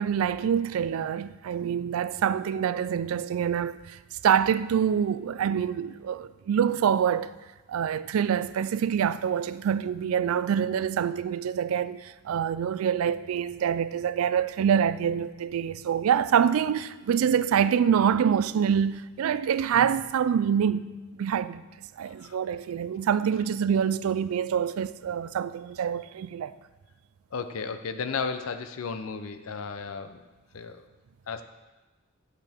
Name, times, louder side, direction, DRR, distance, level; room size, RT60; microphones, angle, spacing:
voice 1, 0.0-4.0 4.2-7.3 7.7-20.9 21.2-21.6 22.0-26.5, right 8 dB, 85° right, 0.3 m, -26 dB
voice 2, 22.1-22.4 27.3-30.2 30.5-30.8 31.3-31.4, left 5 dB, 80° left, 0.6 m, -34 dB
8.2 x 8.1 x 3.5 m
head